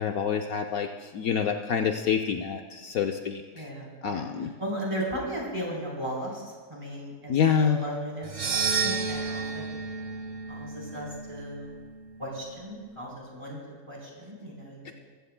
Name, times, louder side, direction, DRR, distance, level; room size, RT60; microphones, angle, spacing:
voice 1, 0.0-3.7 4.0-4.5 7.3-7.8 14.8-14.9, left 7 dB, 70° left, 4 dB, 1.1 m, -27 dB
voice 2, 3.5-4.2 4.6-6.4 6.7-9.7 10.5-11.8 12.2-13.6 13.9-14.9, equal, 20° right, -4 dB, 3.7 m, -36 dB
sound 1, 8.2-12.6, right 5 dB, 90° right, 0.4 m, -32 dB
22.5 x 14.5 x 2.2 m, 1.4 s
omnidirectional pair, 1.7 m